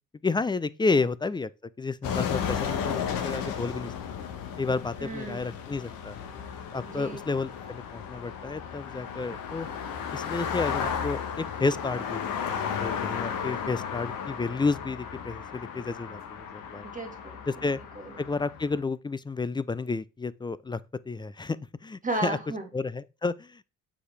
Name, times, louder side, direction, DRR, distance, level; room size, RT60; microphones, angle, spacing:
voice 1, 0.2-1.5 1.8-3.9 4.6-6.2 6.7-9.7 10.1-12.3 12.7-16.8 17.5-17.8 18.2-20.8 21.1-21.6 21.8-22.4 22.7-23.6, left 3 dB, 15° left, 0.4 m, -31 dB
sound 1, 2.0-18.8, left 7 dB, 75° left, 1.2 m, -34 dB
voice 2, 5.0-5.7 6.9-7.2 16.8-17.4 17.7-18.1 22.0-22.7, right 2 dB, 25° right, 1.9 m, -35 dB
7.2 x 4.9 x 3.3 m
supercardioid pair, 75°, 34 cm